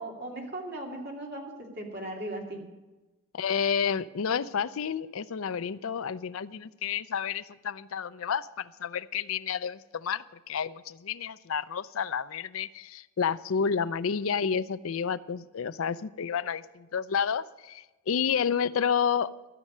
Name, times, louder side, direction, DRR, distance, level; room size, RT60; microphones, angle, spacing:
voice 1, 0.0-2.6, right 1 dB, 50° right, 0 dB, 2.6 m, -38 dB
voice 2, 3.3-19.3, left 7 dB, 70° left, 15 dB, 0.5 m, -30 dB
14.0 x 6.6 x 9.5 m, 1.1 s
head